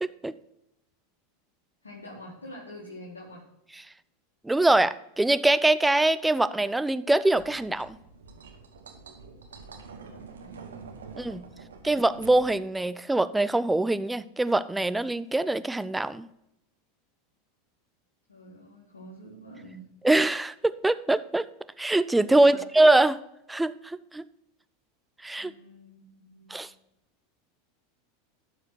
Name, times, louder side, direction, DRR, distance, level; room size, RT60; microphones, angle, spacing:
voice 1, 0.0-0.3 4.4-8.0 11.2-11.4 11.8-16.3 20.0-21.5 21.8-23.2 23.5-24.2 25.2-25.5 26.5-26.7, right 2 dB, 10° right, 15 dB, 0.4 m, -23 dB
voice 2, 1.8-3.4 9.9-10.7 11.0-12.0 18.3-19.9 22.3-22.6 25.4-26.6, equal, 90° left, -4 dB, 2.0 m, -47 dB
sound 1, 7.3-12.5, right 5 dB, 85° right, 1.3 m, -46 dB
12.5 x 4.9 x 4.6 m, 0.83 s
hypercardioid pair, 90°, 0 cm